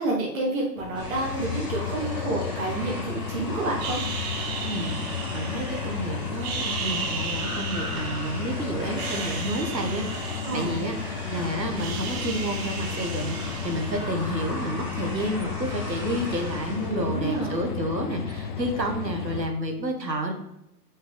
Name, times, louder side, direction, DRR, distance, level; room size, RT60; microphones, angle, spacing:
voice 1, 0.0-4.0 10.5-10.8 16.9-17.6, right 2 dB, 55° right, -4 dB, 2.3 m, -29 dB
sound 1, 0.8-19.5, left 7 dB, 35° left, 0.4 m, -33 dB
sound 2, 0.9-18.3, left 1 dB, 10° right, 2.6 m, -38 dB
sound 3, 3.8-5.9 6.3-8.5 8.9-11.3 11.5-14.4, right 6 dB, 40° right, 1.0 m, -36 dB
voice 2, 4.7-10.9 11.3-20.3, right 1 dB, 90° right, 4 dB, 1.3 m, -30 dB
6.4 x 6.0 x 3.7 m, 0.86 s
figure-of-eight pair, 100°, 49 cm